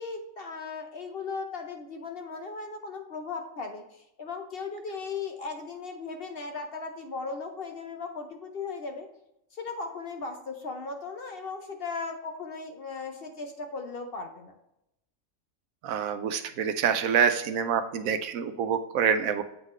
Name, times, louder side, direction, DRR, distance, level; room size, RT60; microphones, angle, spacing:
voice 1, 0.0-9.1 9.5-14.6, left 4 dB, 55° left, 4 dB, 0.8 m, -37 dB
voice 2, 15.8-19.4, right 7 dB, 75° right, 9 dB, 1.0 m, -26 dB
8.0 x 3.9 x 3.1 m, 0.85 s
omnidirectional pair, 1.5 m